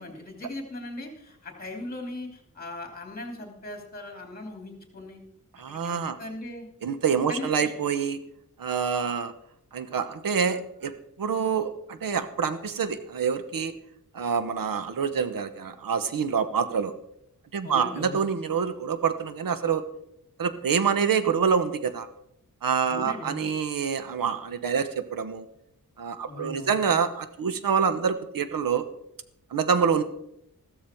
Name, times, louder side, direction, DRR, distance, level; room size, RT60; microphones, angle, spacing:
voice 1, 0.0-5.2 5.7-6.7 7.3-7.7 17.6-18.2 22.9-23.4 26.3-26.8, left 2 dB, 25° left, 2 dB, 3.0 m, -39 dB
voice 2, 5.6-6.2 6.8-8.2 8.6-9.3 9.7-13.7 14.1-16.9 17.5-19.8 20.4-22.1 22.6-25.5 26.0-28.8 29.5-30.0, right 6 dB, 80° right, 11 dB, 1.0 m, -26 dB
14.5 x 13.0 x 4.5 m, 0.78 s
wide cardioid pair, 155°, 33 cm